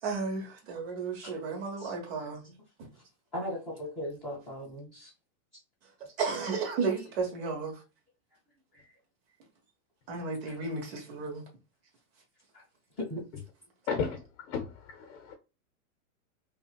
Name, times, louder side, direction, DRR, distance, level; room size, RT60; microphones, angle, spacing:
voice 1, 0.0-2.5 6.2-7.8 10.1-11.4, right 4 dB, 40° right, 1.3 m, -33 dB
voice 2, 3.3-5.1 8.7-8.8 10.5-10.6 12.5-12.6 13.0-13.2, left 1 dB, 5° left, 0.3 m, -38 dB
voice 3, 13.9-15.3, left 6 dB, 50° left, 0.8 m, -34 dB
5.5 x 2.4 x 2.3 m
supercardioid pair, 170°, 45 cm